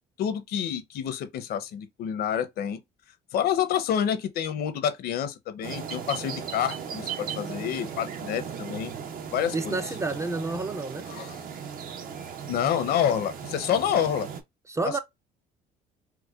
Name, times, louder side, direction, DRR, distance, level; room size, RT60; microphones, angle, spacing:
voice 1, 0.2-2.8 3.3-8.9 9.3-9.8 11.1-11.4 12.5-14.3 14.8-15.0, left 9 dB, 70° left, 0.7 m, -28 dB
sound 1, 5.6-14.4, right 7 dB, 55° right, 0.7 m, -37 dB
voice 2, 9.5-11.0 14.7-15.0, right 3 dB, 15° right, 0.4 m, -29 dB
4.6 x 2.1 x 2.3 m
cardioid pair, 110°, 17 cm